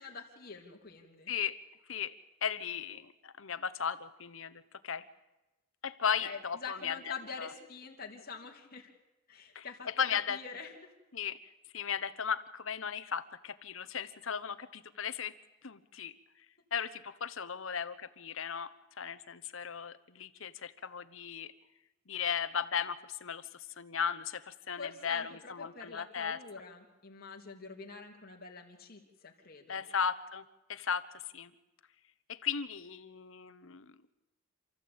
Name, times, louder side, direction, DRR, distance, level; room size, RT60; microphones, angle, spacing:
voice 1, 0.0-1.3 6.2-8.9 9.3-10.9 24.8-29.8, left 5 dB, 45° left, 1 dB, 2.9 m, -46 dB
voice 2, 1.3-1.6 1.9-2.1 2.4-5.0 5.8-7.5 9.5-10.4 11.1-11.4 11.7-15.3 15.6-16.1 16.7-21.5 22.1-26.4 29.7-30.4 30.7-31.1 31.3-31.5 32.3-34.1, left 7 dB, 65° left, 12 dB, 1.0 m, -36 dB
28.0 x 14.0 x 8.7 m, 1.0 s
head